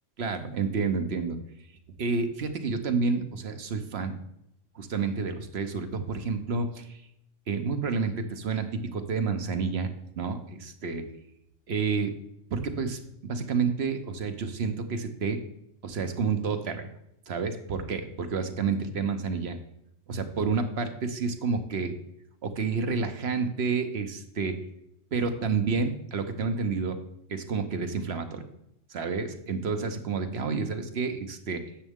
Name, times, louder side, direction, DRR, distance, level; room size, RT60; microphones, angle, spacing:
voice 1, 0.2-1.4 2.0-4.2 4.7-7.0 7.5-9.9 10.2-11.1 11.7-12.2 12.5-15.4 15.8-16.9 17.3-19.6 20.1-21.9 22.4-24.6 25.1-27.0 27.3-28.4 28.9-31.7, right 5 dB, 55° right, 8 dB, 1.0 m, -29 dB
9.9 x 7.4 x 3.6 m, 0.79 s
omnidirectional pair, 1.3 m